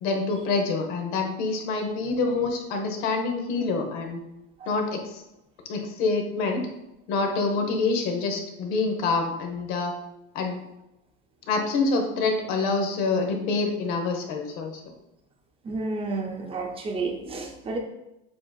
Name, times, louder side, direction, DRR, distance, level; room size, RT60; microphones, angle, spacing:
voice 1, 0.0-4.2 4.7-5.2 5.7-6.7 7.1-9.9 10.3-10.6 11.5-14.8, left 3 dB, 75° left, 3 dB, 1.0 m, -26 dB
voice 2, 15.6-17.8, right 3 dB, 15° right, 1 dB, 0.6 m, -31 dB
7.3 x 2.8 x 2.3 m, 0.90 s
cardioid pair, 135°, 34 cm